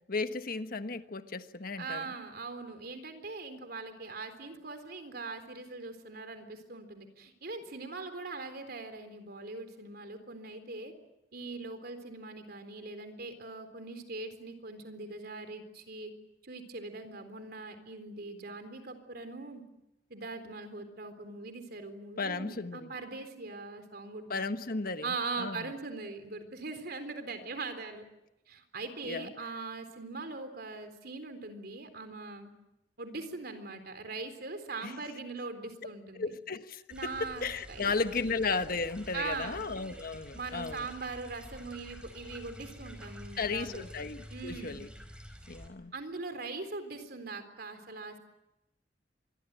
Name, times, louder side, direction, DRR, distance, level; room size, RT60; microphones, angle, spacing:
voice 1, 0.1-2.1 22.2-22.9 24.3-25.7 29.0-29.3 34.8-34.9 36.2-37.1 37.4-40.9 43.4-44.9 45.5-45.9, left 4 dB, 55° left, 9 dB, 1.3 m, -35 dB
voice 2, 1.8-10.9 11.3-16.1 16.4-19.6 20.1-24.5 25.0-28.0 28.5-32.5 33.0-36.3 36.9-37.9 39.1-39.6 40.3-43.8 44.3-44.9 45.9-48.2, right 3 dB, 60° right, 9 dB, 3.9 m, -41 dB
sound 1, 36.9-45.7, equal, 5° right, 4.6 m, -49 dB
25.5 x 22.5 x 9.0 m, 0.88 s
head